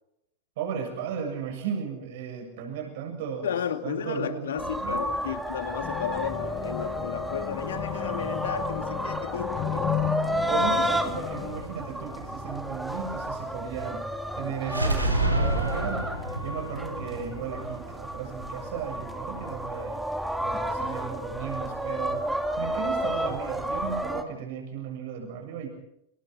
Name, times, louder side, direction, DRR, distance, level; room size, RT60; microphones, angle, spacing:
voice 1, 0.6-3.5 3.8-5.0 10.5-14.1 14.4-16.1 16.4-20.0 20.4-25.7, right 7 dB, 50° right, 3 dB, 7.2 m, -35 dB
voice 2, 3.4-9.8, left 8 dB, 65° left, 8 dB, 2.4 m, -33 dB
sound 1, 4.6-24.2, right 1 dB, 5° right, 2.7 m, -32 dB
sound 2, 5.8-11.6, left 12 dB, 35° left, 3.1 m, -33 dB
sound 3, 14.6-18.5, right 2 dB, 85° right, 4.9 m, -28 dB
28.5 x 27.5 x 4.4 m, 0.79 s
figure-of-eight pair, 90°, 0 cm